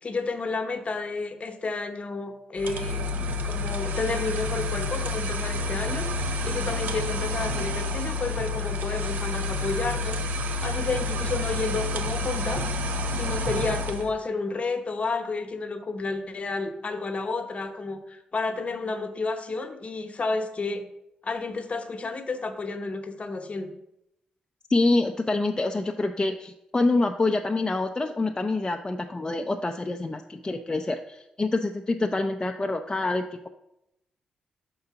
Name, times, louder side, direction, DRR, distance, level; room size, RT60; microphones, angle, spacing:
voice 1, 0.0-3.0 3.4-6.1 6.4-12.7 13.1-20.9 21.2-23.7, left 3 dB, 45° left, 7 dB, 1.0 m, -31 dB
sound 1, 2.6-14.1, left 2 dB, 70° right, 0.7 m, -29 dB
voice 2, 24.7-33.5, left 2 dB, 30° left, 5 dB, 0.5 m, -26 dB
5.6 x 3.9 x 5.7 m, 0.85 s
hypercardioid pair, 45°, 3 cm